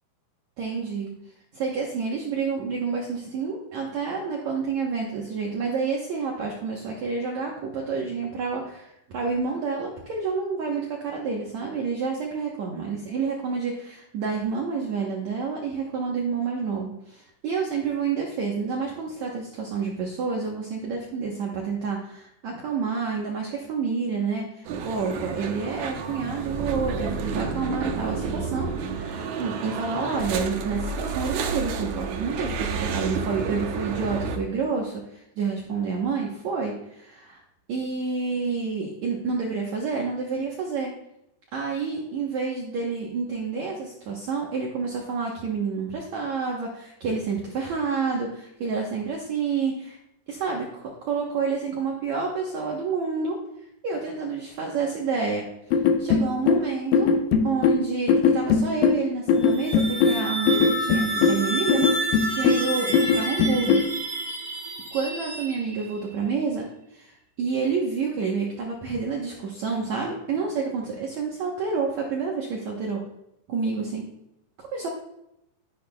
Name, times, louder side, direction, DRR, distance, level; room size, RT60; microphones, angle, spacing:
voice 1, 0.6-1.1 1.5-37.4 37.7-40.9 41.5-50.0 50.3-53.4 53.8-55.5 56.0-57.2 57.4-63.8 64.9-66.7 66.9-73.0 73.5-74.1 74.6-74.9, right 5 dB, 70° right, -1 dB, 1.7 m, -29 dB
sound 1, 24.6-34.4, right 5 dB, 90° right, 1.6 m, -30 dB
sound 2, 55.7-63.9, left 5 dB, 75° left, 2.3 m, -21 dB
sound 3, 59.3-66.0, right 1 dB, 45° right, 1.7 m, -30 dB
12.5 x 11.0 x 2.3 m, 0.81 s
omnidirectional pair, 4.7 m